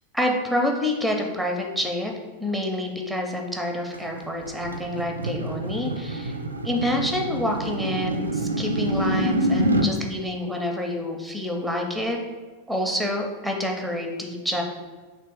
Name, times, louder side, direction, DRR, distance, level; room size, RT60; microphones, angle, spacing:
voice 1, 0.1-2.1 2.4-6.4 6.6-12.2 12.7-14.6, left 1 dB, ahead, 2 dB, 0.6 m, -27 dB
sound 1, 3.9-9.9, right 1 dB, 80° right, 0.3 m, -27 dB
3.3 x 3.0 x 4.7 m, 1.4 s
figure-of-eight pair, 90°, 0 cm